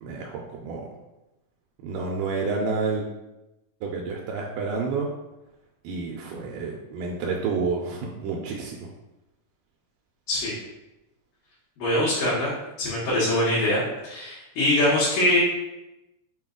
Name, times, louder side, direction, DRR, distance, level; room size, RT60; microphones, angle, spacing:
voice 1, 0.0-0.9 1.8-3.0 3.8-5.1 5.8-8.8, right 4 dB, 85° right, -1 dB, 2.2 m, -29 dB
voice 2, 11.8-15.4, left 1 dB, 75° left, -10 dB, 2.8 m, -23 dB
6.0 x 2.3 x 3.6 m, 0.96 s
omnidirectional pair, 3.8 m